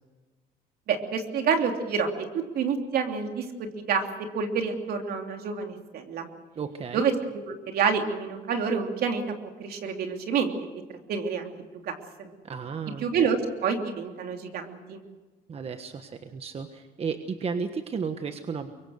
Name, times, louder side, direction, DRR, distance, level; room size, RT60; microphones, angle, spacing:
voice 1, 0.9-3.5 3.9-4.1 4.3-6.3 6.9-9.2 9.6-10.7 11.1-11.5 11.8-11.9 12.2-12.3 13.0-13.4 13.6-15.0, right 6 dB, 65° right, 4 dB, 3.2 m, -28 dB
voice 2, 6.5-7.1 12.4-13.1 15.5-18.7, right 5 dB, 35° right, 8 dB, 1.4 m, -33 dB
23.5 x 23.5 x 6.5 m, 1.3 s
cardioid pair, 110°, 17 cm